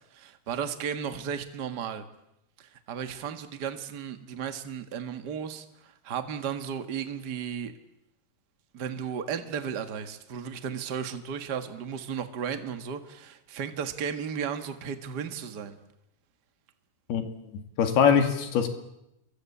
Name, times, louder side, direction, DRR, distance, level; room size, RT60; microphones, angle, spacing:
voice 1, 0.1-2.0 2.6-7.7 8.7-15.8, right 7 dB, 50° right, 9 dB, 1.2 m, -34 dB
voice 2, 17.1-18.7, left 7 dB, 75° left, 7 dB, 4.2 m, -23 dB
27.5 x 22.5 x 8.5 m, 0.87 s
omnidirectional pair, 4.6 m